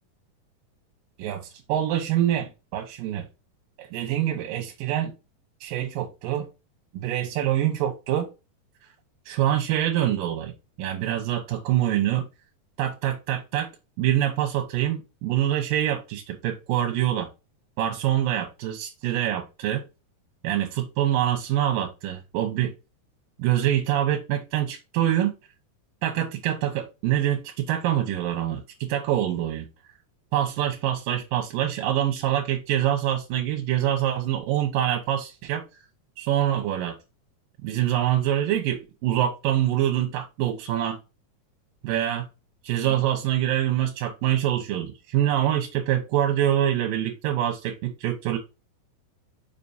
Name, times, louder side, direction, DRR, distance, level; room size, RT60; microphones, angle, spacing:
voice 1, 1.2-3.2 3.8-5.1 5.6-6.5 6.9-8.3 9.3-10.5 10.8-12.3 12.8-13.7 14.0-17.3 17.8-19.8 20.4-22.7 23.4-25.3 26.0-29.7 30.3-35.6 36.2-37.0 37.6-41.0 41.8-42.3 42.6-48.4, right 11 dB, 85° right, 3 dB, 2.7 m, -25 dB
6.7 x 5.3 x 2.6 m, 0.27 s
omnidirectional pair, 3.9 m